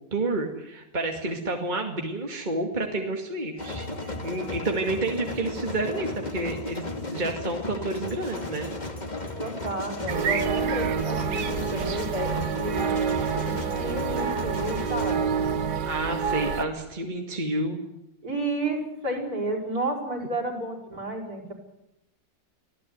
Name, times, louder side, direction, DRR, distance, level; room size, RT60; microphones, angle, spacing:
voice 1, 0.0-8.7 15.8-17.8, right 2 dB, 25° right, 2 dB, 2.3 m, -30 dB
sound 1, 3.6-15.2, left 1 dB, 25° left, 2.3 m, -35 dB
voice 2, 9.4-13.0 13.4-15.3 18.2-21.5, right 2 dB, 55° right, 1 dB, 6.0 m, -31 dB
sound 2, 10.1-16.6, right 6 dB, 70° right, 1.8 m, -28 dB
24.5 x 16.5 x 9.5 m, 0.89 s
omnidirectional pair, 2.0 m